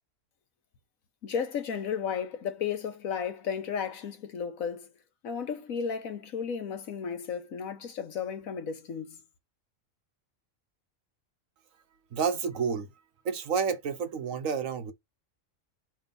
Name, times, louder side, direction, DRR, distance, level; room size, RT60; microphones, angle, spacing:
voice 1, 1.2-4.9 5.2-9.2, left 7 dB, 80° left, 1.5 m, -34 dB
voice 2, 12.1-12.9 13.2-14.9, right 6 dB, 75° right, 1.4 m, -30 dB
5.6 x 3.4 x 5.2 m
omnidirectional pair, 1.4 m